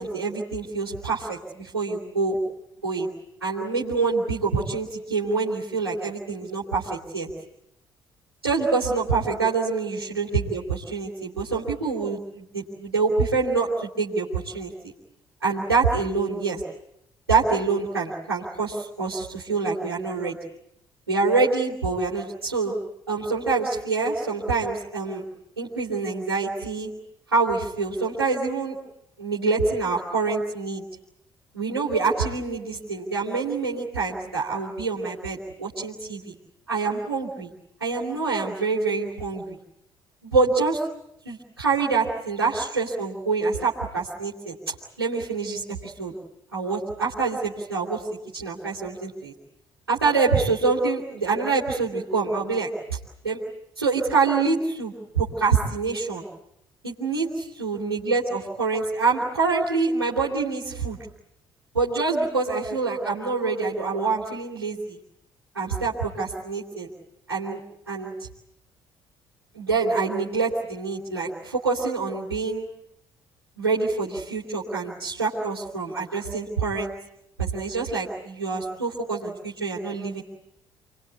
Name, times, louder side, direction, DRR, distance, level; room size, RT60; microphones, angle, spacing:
voice 1, 0.0-2.4 2.8-3.1 3.4-7.3 8.4-14.7 15.4-16.6 17.3-20.3 21.1-22.7 23.1-25.2 25.6-26.9 27.3-28.7 29.2-30.9 31.5-36.3 36.7-37.5 37.8-39.6 40.2-40.8 41.2-46.1 46.5-48.0 48.3-49.3 49.9-53.0 53.2-53.4 53.8-56.2 56.8-61.0 61.7-65.0 65.5-66.9 67.3-67.6 67.9-68.1 69.5-72.6 73.6-76.9 77.4-80.2, right 4 dB, 85° right, -8 dB, 3.2 m, -26 dB
28.5 x 22.0 x 8.4 m, 0.79 s
figure-of-eight pair, 45°, 13 cm